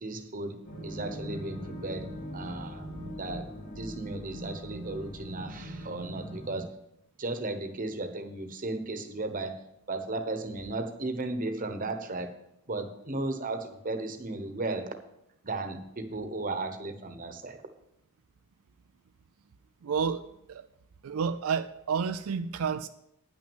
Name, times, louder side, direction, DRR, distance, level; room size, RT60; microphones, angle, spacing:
voice 1, 0.0-2.8 3.2-6.8 7.2-9.6 9.9-12.4 12.7-14.9 15.4-17.6, right 2 dB, 40° right, 1.1 m, -35 dB
sound 1, 0.6-6.6, equal, 55° left, 2.2 m, -40 dB
voice 2, 19.8-20.7 21.0-22.9, right 6 dB, 85° right, 0.4 m, -30 dB
9.9 x 6.2 x 7.1 m
head